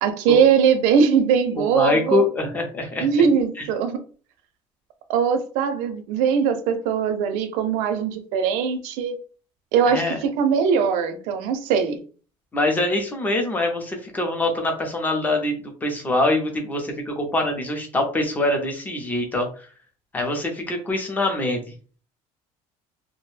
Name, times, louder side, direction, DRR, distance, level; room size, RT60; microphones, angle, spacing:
voice 1, 0.0-2.2 3.0-4.1 5.1-9.2 9.7-12.0, right 6 dB, 85° right, 8 dB, 0.5 m, -21 dB
voice 2, 1.5-3.1 3.6-3.7 9.9-10.2 12.5-19.7 20.1-21.6, left 2 dB, 15° left, 3 dB, 0.5 m, -24 dB
2.5 x 2.1 x 3.2 m, 0.39 s
cardioid pair, 175°, 13 cm